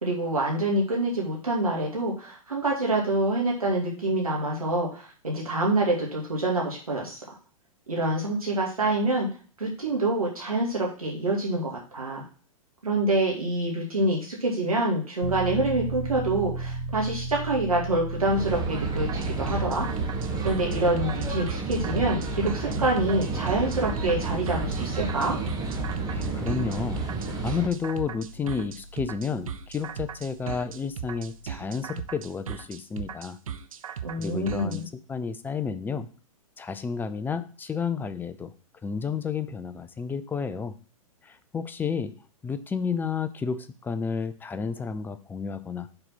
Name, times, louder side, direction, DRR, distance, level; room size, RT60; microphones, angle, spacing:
voice 1, 0.0-7.3 7.9-9.3 9.6-12.2 12.8-19.9 20.4-25.4 34.0-34.8, right 2 dB, 90° right, -2 dB, 2.4 m, -26 dB
Piano, 15.2-31.9, right 2 dB, 40° left, 1.6 m, -38 dB
sound 1, 18.2-27.7, right 3 dB, 20° right, 1.5 m, -31 dB
sound 2, 19.0-34.8, right 8 dB, 70° right, 0.7 m, -37 dB
voice 2, 26.0-33.4 34.1-34.8 35.1-36.1 36.6-38.5 38.8-40.7 41.2-42.1 42.4-45.9, left 5 dB, 10° left, 12 dB, 0.5 m, -31 dB
6.7 x 4.3 x 5.7 m, 0.40 s
hypercardioid pair, 110°, 18 cm